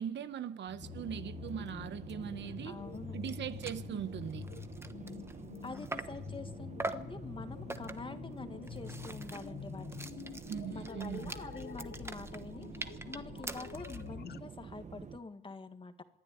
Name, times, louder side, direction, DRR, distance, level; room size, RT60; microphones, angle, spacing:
voice 1, 0.0-2.8 3.1-4.5 10.5-11.3, right 9 dB, 65° right, 1.1 m, -40 dB
sound 1, 0.7-14.4, left 9 dB, 55° left, 0.7 m, -47 dB
sound 2, 0.8-15.2, right 6 dB, 35° right, 0.9 m, -48 dB
voice 2, 2.6-3.1 5.6-9.9 10.7-16.0, left 3 dB, 25° left, 1.8 m, -46 dB
sound 3, 3.0-3.1 3.2-3.4 3.6-3.9 4.3-6.3 6.8-7.2 7.7-8.2 8.6-14.1, right 2 dB, 10° right, 1.2 m, -43 dB
26.0 x 10.5 x 9.9 m
cardioid pair, 90°, 20 cm